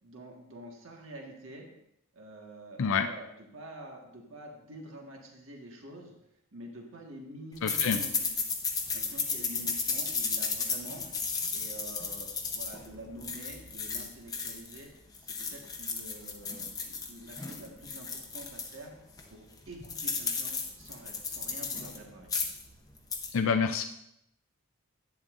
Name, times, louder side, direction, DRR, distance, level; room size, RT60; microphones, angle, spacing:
voice 1, 0.0-1.7 2.1-6.1 6.5-8.3 8.9-11.0 11.5-14.9 15.2-18.9 19.3-22.3, right 1 dB, 65° right, 0 dB, 1.6 m, -47 dB
voice 2, 7.6-8.0 23.3-23.8, left 5 dB, 70° left, 5 dB, 0.5 m, -27 dB
sound 1, 7.7-14.8 15.1-18.8 19.2-19.3 19.5-22.0 22.2-22.7 23.0-23.3, left 5 dB, 15° left, 0.8 m, -34 dB
11.0 x 9.4 x 2.6 m, 0.79 s
head